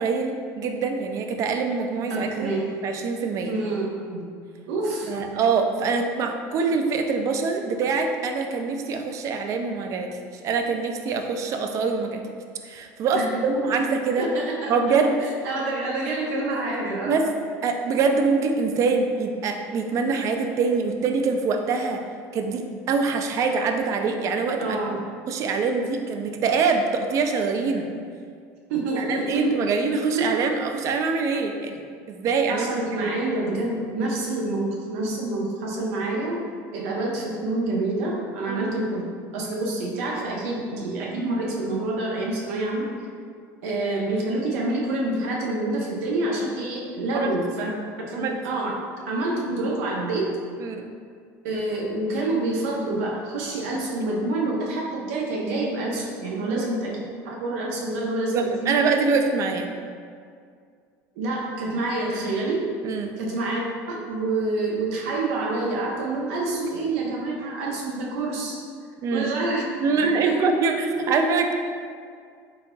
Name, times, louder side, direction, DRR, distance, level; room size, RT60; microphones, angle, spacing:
voice 1, 0.0-2.5 2.8-3.5 5.1-12.2 12.6-14.3 14.7-15.2 17.0-17.3 17.6-22.0 22.3-25.0 25.3-27.9 29.0-31.8 32.1-32.7 33.0-33.1 38.5-38.7 47.1-47.3 48.1-48.4 50.6-50.9 56.5-56.6 58.3-59.7 62.8-63.2 69.0-69.3 69.8-71.5, right 4 dB, 45° right, 4 dB, 0.4 m, -24 dB
voice 2, 2.1-2.7 3.5-4.3 4.7-5.1 13.1-13.3 14.2-15.0 15.4-17.2 24.6-25.0 28.7-29.5 30.1-30.3 32.5-36.4 36.7-39.0 39.3-42.9 43.6-47.7 48.1-48.7 49.1-50.4 51.4-58.8 61.2-62.7 63.2-63.6 63.9-68.6 69.1-69.6 70.0-71.2, right 2 dB, 90° right, -2 dB, 0.7 m, -27 dB
3.9 x 3.7 x 2.2 m, 2.2 s
supercardioid pair, 125°, 8 cm